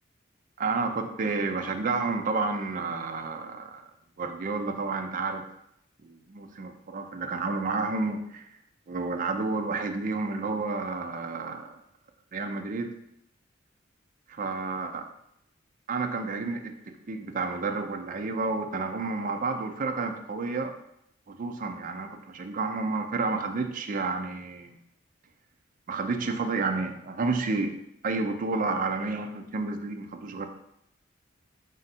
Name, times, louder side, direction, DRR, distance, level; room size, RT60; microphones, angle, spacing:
voice 1, 0.6-3.8 4.2-5.5 6.0-8.5 8.9-11.7 12.3-12.9 14.3-15.0 15.9-20.7 21.3-24.8 25.9-27.7 28.0-30.5, right 3 dB, 40° right, 5 dB, 0.4 m, -30 dB
4.4 x 2.6 x 4.1 m, 0.78 s
head